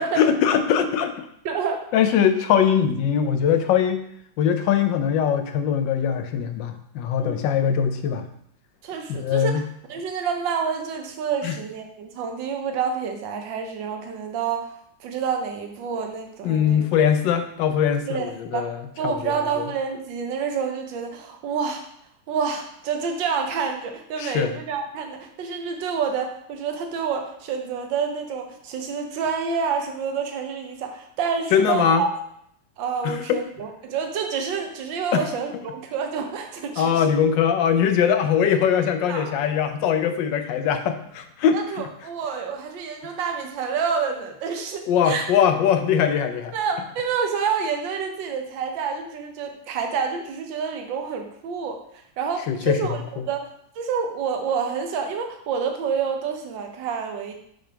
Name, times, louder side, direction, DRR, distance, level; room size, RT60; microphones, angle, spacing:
voice 1, 0.0-1.3 1.9-4.1 4.4-8.3 9.1-9.7 11.4-11.6 16.4-19.6 24.2-24.5 31.5-32.0 33.0-33.4 35.1-35.2 36.8-41.9 43.0-43.1 44.9-46.5 52.5-53.0, left 8 dB, 80° left, 8 dB, 1.3 m, -21 dB
voice 2, 1.4-1.8 7.2-7.5 8.8-14.7 15.0-16.8 18.1-18.6 19.0-21.8 22.3-32.1 32.8-37.0 39.1-39.4 41.5-45.3 46.5-53.5 53.8-57.3, right 6 dB, 80° right, 4 dB, 1.6 m, -28 dB
6.1 x 3.5 x 5.1 m, 0.71 s
omnidirectional pair, 2.0 m